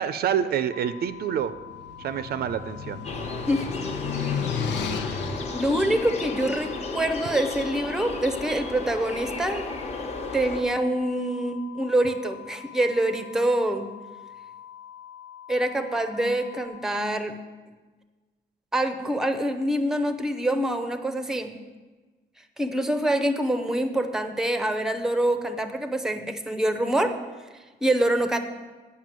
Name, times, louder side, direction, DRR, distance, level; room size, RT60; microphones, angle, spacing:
voice 1, 0.0-1.5 2.0-3.0, right 9 dB, 60° right, 12 dB, 0.5 m, -27 dB
sound 1, 0.7-16.7, left 10 dB, 60° left, 1.3 m, -45 dB
sound 2, 1.3-7.6, left 6 dB, 80° left, 0.9 m, -34 dB
sound 3, 3.0-10.6, left 3 dB, 35° left, 1.0 m, -33 dB
voice 2, 4.2-4.5 5.5-9.7 10.3-13.9 15.5-17.4 18.7-21.5 22.6-27.2 27.8-28.4, right 1 dB, 5° right, 8 dB, 0.6 m, -25 dB
9.3 x 5.7 x 7.4 m, 1.3 s
cardioid pair, 150°, 18 cm